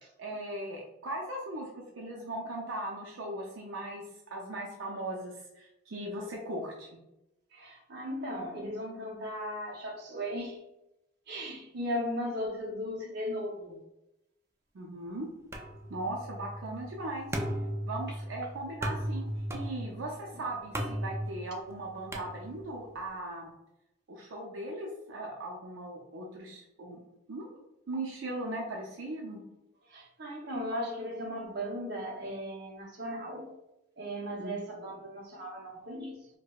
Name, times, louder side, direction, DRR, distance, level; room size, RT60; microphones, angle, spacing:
voice 1, 0.2-6.9 14.7-15.3 15.9-17.4 17.9-23.5 24.1-27.0 27.3-27.5 27.9-29.4 34.4-34.5, right 1 dB, 85° right, -1 dB, 0.5 m, -38 dB
voice 2, 7.5-10.6 11.3-13.8 20.3-20.4 29.8-33.5 34.0-36.3, equal, 60° right, -1 dB, 0.8 m, -37 dB
sound 1, 15.5-22.9, equal, 15° right, 0.3 m, -37 dB
4.6 x 2.1 x 2.3 m, 0.91 s
head